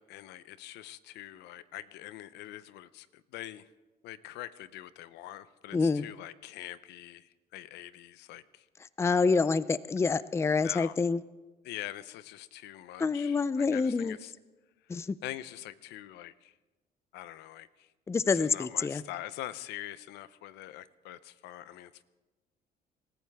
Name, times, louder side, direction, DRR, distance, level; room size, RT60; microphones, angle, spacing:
voice 1, 0.0-3.7 4.0-8.7 10.6-10.9 11.6-14.3 14.8-16.6 17.1-17.9 18.3-22.0, left 14 dB, 85° left, 16 dB, 0.6 m, -44 dB
voice 2, 5.7-6.0 9.0-11.2 13.0-14.2 14.9-15.2 18.1-19.0, left 4 dB, 15° left, 17 dB, 0.4 m, -27 dB
26.5 x 14.0 x 3.5 m, 1.2 s
cardioid pair, 110°, 17 cm